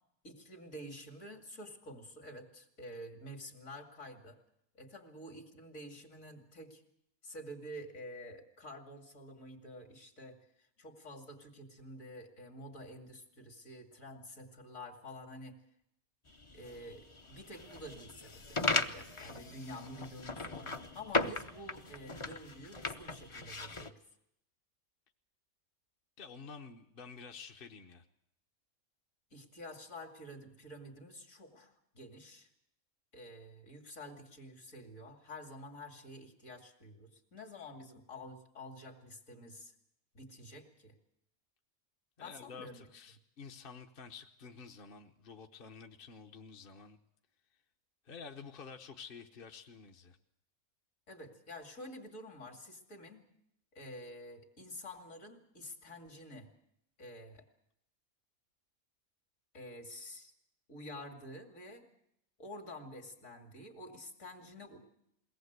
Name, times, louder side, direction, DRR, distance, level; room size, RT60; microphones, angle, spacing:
voice 1, 0.2-4.4 4.7-6.8 7.2-15.6 16.5-24.0 29.3-32.5 33.1-39.7 40.1-40.9 42.2-42.9 51.1-53.3 53.7-56.5 57.0-57.4 59.5-60.3 60.7-61.8 62.4-64.8, left 1 dB, 65° left, 4 dB, 2.9 m, -49 dB
sound 1, 16.3-23.9, left 3 dB, 30° left, 0.7 m, -38 dB
voice 2, 26.2-28.0 42.2-47.0 48.0-50.2, left 5 dB, 45° left, 4 dB, 1.1 m, -50 dB
22.5 x 18.0 x 8.1 m, 0.77 s
omnidirectional pair, 1.5 m